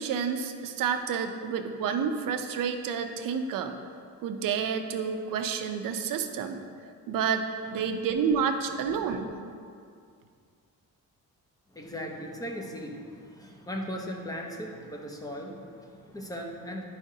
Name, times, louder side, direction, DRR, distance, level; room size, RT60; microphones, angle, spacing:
voice 1, 0.0-3.7 4.2-6.6 7.1-7.5 7.7-9.3, right 6 dB, 70° right, 6 dB, 0.6 m, -29 dB
voice 2, 8.8-9.3 11.7-16.8, equal, 10° left, 1 dB, 0.5 m, -38 dB
10.0 x 4.9 x 2.7 m, 2.3 s
cardioid pair, 170°, 34 cm